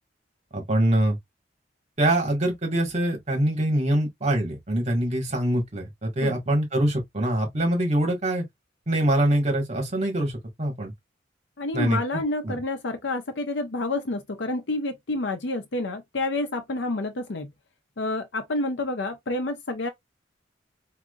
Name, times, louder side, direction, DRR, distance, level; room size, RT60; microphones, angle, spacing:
voice 1, 0.5-1.2 2.0-8.4 8.9-10.3 10.6-10.9 11.7-12.6, right 1 dB, 35° right, 1.7 m, -24 dB
voice 2, 11.6-17.5 18.0-19.9, left 2 dB, 70° left, 0.7 m, -29 dB
3.7 x 2.8 x 2.4 m
head